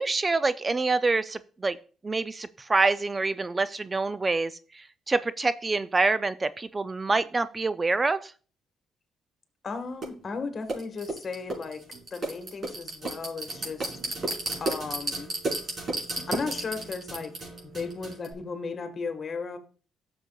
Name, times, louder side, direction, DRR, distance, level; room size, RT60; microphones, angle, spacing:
voice 1, 0.0-1.8 2.0-8.3, right 3 dB, 25° right, 14 dB, 0.3 m, -26 dB
voice 2, 9.6-11.8 12.1-13.9 14.6-15.3 16.3-17.3 17.7-19.6, left 4 dB, 40° left, 7 dB, 1.4 m, -35 dB
sound 1, 10.0-10.1 10.7-18.3, right 2 dB, 45° right, 4.7 m, -33 dB
12.0 x 6.8 x 2.3 m, 0.39 s
cardioid pair, 85°, 0 cm